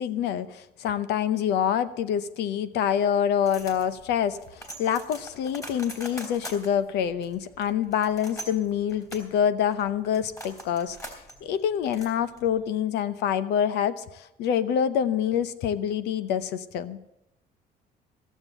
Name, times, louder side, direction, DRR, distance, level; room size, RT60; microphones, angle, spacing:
voice 1, 0.0-17.0, left 9 dB, 80° left, 14 dB, 0.7 m, -26 dB
sound 1, 3.4-12.7, equal, 20° left, 3.4 m, -43 dB
16.5 x 7.3 x 8.1 m, 0.91 s
cardioid pair, 110°, 17 cm